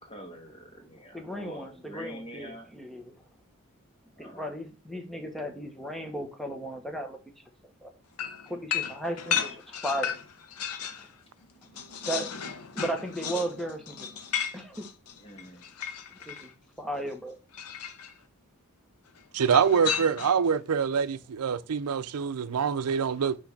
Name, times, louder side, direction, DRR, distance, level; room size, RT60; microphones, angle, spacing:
voice 1, 0.0-2.7 4.2-4.5 15.2-15.6, equal, 25° left, 1.7 m, -45 dB
voice 2, 0.9-3.1 4.2-7.2 7.8-7.9 8.5-10.1 12.0-12.3 12.7-14.1 14.5-14.8 16.2-16.5 16.8-17.4, right 1 dB, ahead, 1.0 m, -35 dB
sound 1, 8.2-11.1 11.4-16.5 17.5-18.1 19.4-20.5, left 8 dB, 80° left, 0.8 m, -34 dB
voice 3, 19.3-23.4, right 6 dB, 80° right, 0.5 m, -25 dB
6.2 x 3.2 x 5.9 m
head